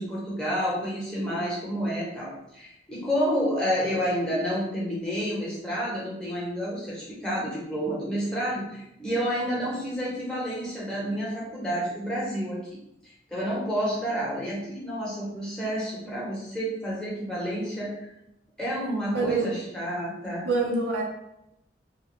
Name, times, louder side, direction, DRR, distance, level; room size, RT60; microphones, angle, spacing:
voice 1, 0.0-12.6 13.0-18.1 18.6-20.4, equal, 5° left, -7 dB, 0.9 m, -29 dB
voice 2, 19.1-19.5 20.4-21.0, right 3 dB, 80° right, -2 dB, 0.8 m, -25 dB
3.0 x 2.2 x 3.5 m, 0.82 s
head